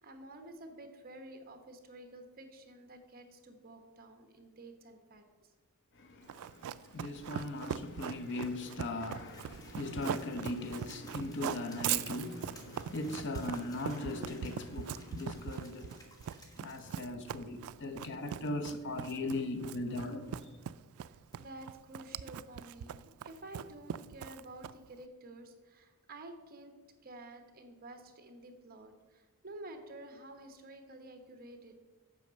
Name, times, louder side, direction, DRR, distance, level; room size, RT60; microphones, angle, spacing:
voice 1, 0.0-5.3 21.0-26.7 27.0-31.8, right 1 dB, 45° right, 1.1 m, -51 dB
voice 2, 5.9-16.0 16.6-20.6, left 2 dB, 55° left, 0.8 m, -39 dB
Run, 6.3-25.0, right 9 dB, 70° right, 0.3 m, -40 dB
sound 1, 9.2-21.6, equal, 20° left, 1.3 m, -59 dB
8.3 x 5.6 x 6.3 m
head